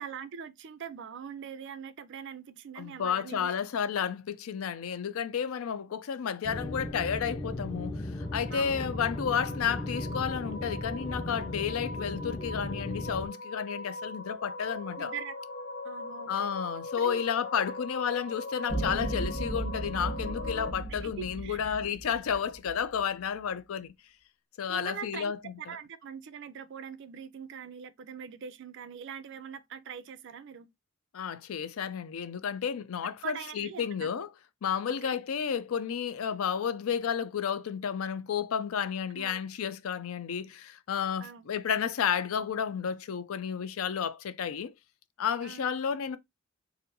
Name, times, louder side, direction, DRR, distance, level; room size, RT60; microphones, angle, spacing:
voice 1, 0.0-3.5 8.5-9.0 15.0-15.3 15.8-16.5 17.0-17.2 21.0-21.6 24.7-30.7 33.2-34.1 34.9-35.2 39.1-39.4 41.2-41.5 45.4-45.7, right 7 dB, 60° right, 0.4 m, -42 dB
voice 2, 2.8-15.1 16.3-23.9 24.6-25.8 31.1-34.3 34.6-44.7 45.2-46.2, left 7 dB, 85° left, 0.4 m, -32 dB
sound 1, 6.4-13.3, left 1 dB, 20° left, 0.4 m, -37 dB
sound 2, 8.2-20.7, left 2 dB, 60° left, 0.9 m, -41 dB
sound 3, 18.7-23.0, right 2 dB, 40° left, 1.0 m, -36 dB
4.2 x 2.6 x 2.6 m
head